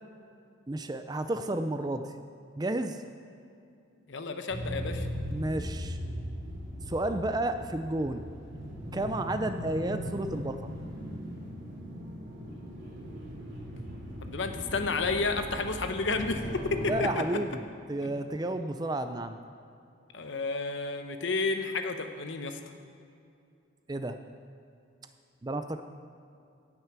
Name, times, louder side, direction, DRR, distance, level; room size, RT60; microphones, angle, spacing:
voice 1, 0.7-2.1 2.6-3.0 5.3-6.0 6.9-8.3 8.9-10.7 16.9-17.6 17.9-19.4 23.9-24.2 25.4-25.8, right 1 dB, 20° right, 9 dB, 0.4 m, -31 dB
voice 2, 4.1-5.1 14.2-17.4 18.0-18.2 20.1-22.6, left 3 dB, 65° left, 7 dB, 0.9 m, -31 dB
sound 1, 4.5-17.0, equal, 65° right, 2.8 m, -39 dB
17.0 x 6.5 x 6.0 m, 2.6 s
head